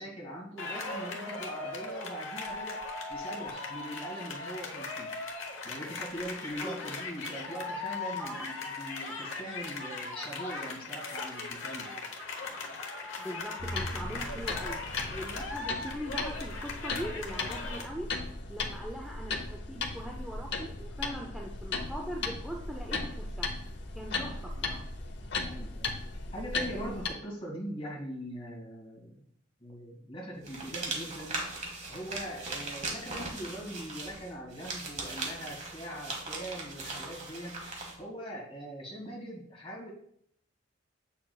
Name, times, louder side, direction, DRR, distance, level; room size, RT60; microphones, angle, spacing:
voice 1, 0.0-5.1 5.6-11.9 25.4-26.0 26.3-29.2 29.6-31.4 31.6-37.7 38.0-39.9, right 1 dB, 30° left, -3 dB, 2.2 m, -41 dB
sound 1, 0.6-17.9, left 3 dB, 85° left, 1.0 m, -39 dB
voice 2, 8.2-8.5 13.2-14.8 15.1-18.1 18.5-23.5 23.9-24.8, equal, ahead, -1 dB, 0.5 m, -41 dB
sound 2, 13.6-27.1, left 3 dB, 65° left, 0.7 m, -37 dB
sound 3, 30.4-38.0, right 3 dB, 35° right, 1.3 m, -39 dB
7.5 x 6.1 x 2.3 m, 0.68 s
head